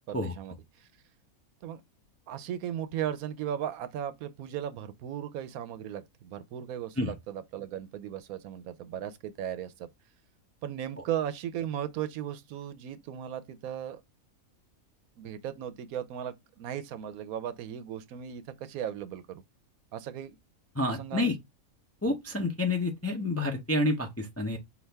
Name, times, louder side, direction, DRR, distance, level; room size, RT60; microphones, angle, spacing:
voice 1, 0.1-0.9 1.6-1.8 2.3-9.9 10.6-14.0 15.2-19.4 19.9-20.4 21.0-21.3, right 10 dB, 80° right, 1.1 m, -36 dB
voice 2, 20.8-21.3 22.0-24.6, left 2 dB, 20° left, 0.3 m, -29 dB
5.9 x 2.5 x 3.3 m
omnidirectional pair, 1.5 m